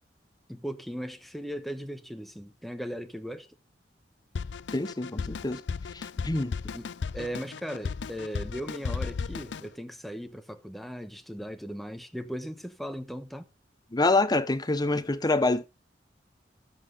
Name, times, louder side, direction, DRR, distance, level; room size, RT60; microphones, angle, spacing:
voice 1, 0.5-3.5 6.7-13.5, equal, ahead, 1.1 m, -38 dB
Drum kit, 4.4-9.7, left 5 dB, 90° left, 0.5 m, -35 dB
voice 2, 4.7-5.6 5.9-6.5 13.9-15.6, left 2 dB, 25° left, 0.8 m, -26 dB
13.5 x 7.6 x 3.9 m
head